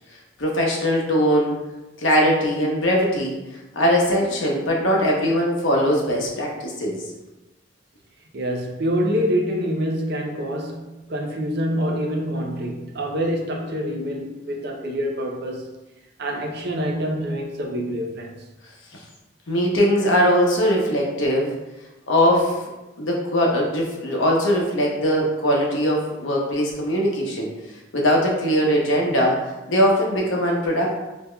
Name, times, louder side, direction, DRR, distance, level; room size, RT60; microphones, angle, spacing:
voice 1, 0.4-1.6 2.0-3.4 3.7-7.0 19.5-21.5 22.1-22.6 23.0-27.5 27.9-29.4 29.7-30.9, equal, 85° left, 0.9 m, -20 dB
voice 2, 8.3-15.7 16.2-18.4, equal, 60° right, 0.6 m, -26 dB
5.1 x 2.7 x 2.3 m
head